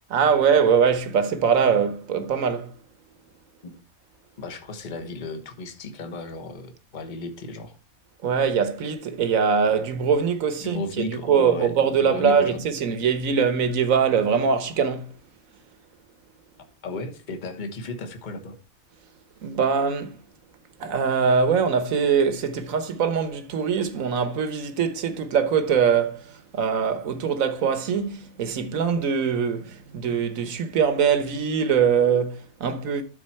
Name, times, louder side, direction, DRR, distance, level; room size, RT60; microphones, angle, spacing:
voice 1, 0.1-2.7 8.2-15.1 19.4-20.2 20.8-33.0, right 6 dB, 65° right, 1.5 m, -22 dB
voice 2, 4.4-7.7 10.6-12.6 16.8-18.6, left 3 dB, 35° left, 1.3 m, -34 dB
13.0 x 4.4 x 4.4 m
omnidirectional pair, 1.5 m